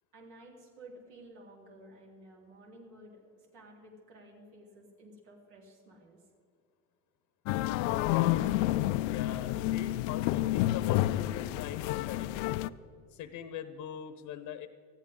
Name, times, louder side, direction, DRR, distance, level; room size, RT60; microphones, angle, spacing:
voice 1, 0.1-6.2 8.1-8.5, right 1 dB, 80° right, -2 dB, 3.8 m, -53 dB
sound 1, 7.5-12.7, left 15 dB, 80° left, 0.6 m, -29 dB
voice 2, 7.8-8.5 9.1-12.4 13.1-14.7, left 10 dB, 55° left, 10 dB, 0.9 m, -41 dB
19.5 x 14.0 x 3.8 m, 2.3 s
supercardioid pair, 110°, 37 cm